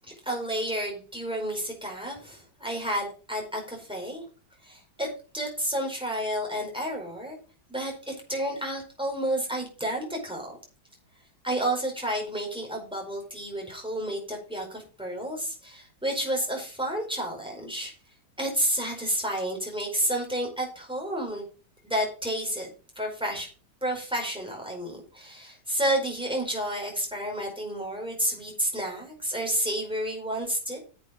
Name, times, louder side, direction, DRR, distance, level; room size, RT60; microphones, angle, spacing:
voice 1, 0.2-4.2 4.6-7.4 7.7-10.6 11.4-17.9 18.4-21.4 21.8-22.7 22.9-23.5 23.8-30.8, right 1 dB, ahead, 0 dB, 4.9 m, -30 dB
10.5 x 8.3 x 4.9 m, 0.36 s
omnidirectional pair, 2.2 m